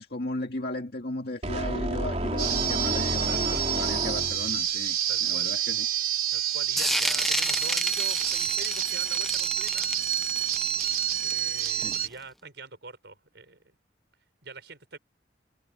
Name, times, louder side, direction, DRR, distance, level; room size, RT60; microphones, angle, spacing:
voice 1, 0.0-5.9 11.8-12.0, left 1 dB, 60° left, 2.1 m, -35 dB
sound 1, 1.4-4.6, right 1 dB, 35° right, 3.4 m, -30 dB
sound 2, 2.4-12.1, right 10 dB, 55° right, 3.8 m, -28 dB
voice 2, 3.3-3.7 5.1-5.5 6.3-9.9 11.2-13.7 14.4-15.0, right 3 dB, 70° right, 5.0 m, -44 dB
sound 3, 6.8-12.1, equal, ahead, 0.7 m, -31 dB
head